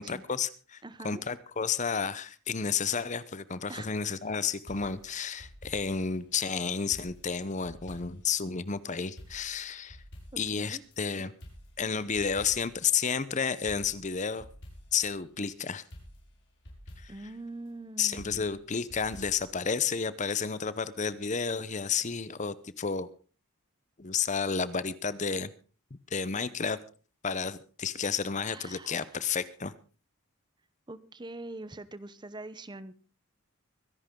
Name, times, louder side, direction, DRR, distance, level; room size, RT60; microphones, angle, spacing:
voice 1, 0.0-10.0 10.4-11.3 11.8-14.5 14.9-15.8 17.0-17.1 18.0-23.1 24.0-25.5 26.1-26.8 27.2-29.7, left 6 dB, 35° left, 16 dB, 0.8 m, -31 dB
voice 2, 0.8-1.2 3.7-4.2 10.3-10.8 17.1-18.5 28.5-29.2 30.9-32.9, right 2 dB, 20° right, 15 dB, 0.8 m, -44 dB
sound 1, 4.7-6.5 6.9-8.4 8.7-8.8 9.2-11.0 11.4-12.9 13.2-13.3 13.7-15.5 15.9-17.4 18.2-19.5, equal, 55° left, 6.1 m, -50 dB
24.0 x 11.0 x 3.8 m, 0.37 s
head